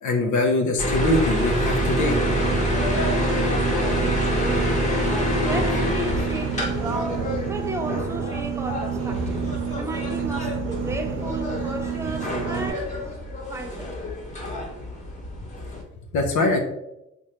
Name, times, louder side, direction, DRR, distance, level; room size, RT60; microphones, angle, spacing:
voice 1, 0.0-2.2 16.1-16.6, left 2 dB, 75° left, 0.6 m, -22 dB
sound 1, 0.8-15.8, equal, 25° left, 1.0 m, -26 dB
Boat Water vehicle, 1.7-12.7, right 9 dB, 70° right, 0.4 m, -30 dB
voice 2, 3.7-9.4 9.8-13.0 13.5-14.0, right 2 dB, 10° right, 0.4 m, -34 dB
3.2 x 2.5 x 2.8 m
cardioid pair, 90°, 30 cm